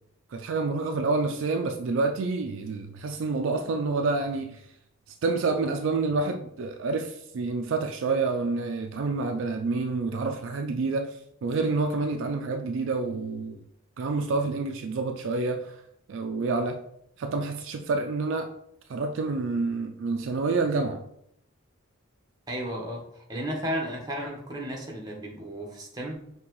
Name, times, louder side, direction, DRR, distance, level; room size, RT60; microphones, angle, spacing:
voice 1, 0.3-4.6 5.2-13.6 14.0-15.8 16.1-16.8 17.2-18.5 18.9-21.0, right 3 dB, 60° right, 5 dB, 0.3 m, -28 dB
voice 2, 22.5-26.4, equal, 20° right, -1 dB, 0.9 m, -34 dB
5.4 x 2.9 x 3.0 m, 0.74 s
head